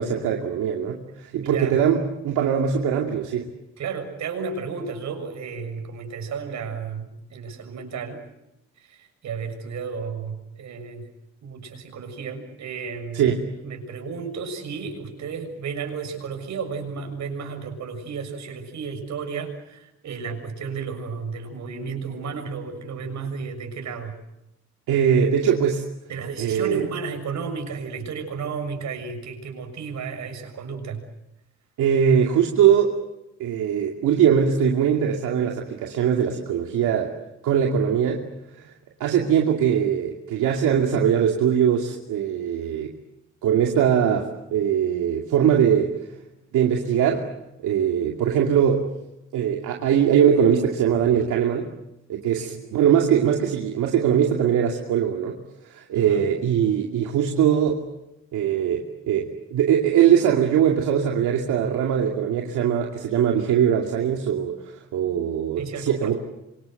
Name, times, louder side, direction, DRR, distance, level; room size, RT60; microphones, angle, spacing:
voice 1, 0.0-3.5 13.1-13.4 24.9-25.8 26.4-26.9 31.8-33.0 33.4-37.1 37.4-38.2 39.0-42.9 43.4-46.0 46.5-47.3 47.6-48.9 49.3-51.7 52.1-55.4 55.6-57.8 58.3-66.1, right 8 dB, 85° right, 1 dB, 2.7 m, -21 dB
voice 2, 1.3-1.8 3.8-8.2 8.8-11.1 11.4-13.3 13.6-24.2 26.1-31.0 52.4-52.6 55.9-56.3 65.6-66.2, right 5 dB, 70° right, 5 dB, 6.9 m, -33 dB
27.0 x 25.0 x 7.9 m, 0.91 s
cardioid pair, 90°, 30 cm